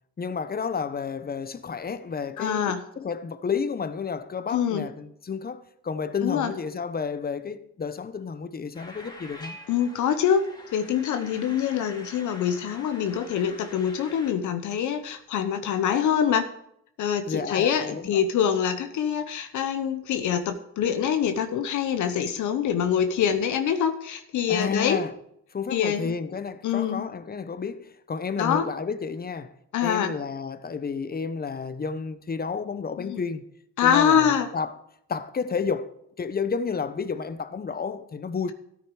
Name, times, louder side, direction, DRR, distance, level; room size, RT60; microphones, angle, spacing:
voice 1, 0.2-9.6 17.3-18.2 24.5-25.1 25.5-29.5 29.8-33.5 33.8-34.8 35.1-38.5, left 5 dB, 30° left, 1.0 m, -31 dB
voice 2, 2.4-2.8 4.5-4.9 6.2-6.5 9.7-10.4 10.7-16.5 17.0-25.0 25.7-26.2 26.6-27.0 28.4-28.7 29.7-30.1 33.0-33.2 33.8-34.5, left 8 dB, 75° left, 1.0 m, -25 dB
sound 1, 8.7-14.3, left 1 dB, 15° left, 2.4 m, -46 dB
13.5 x 9.3 x 4.8 m
cardioid pair, 90°, 30 cm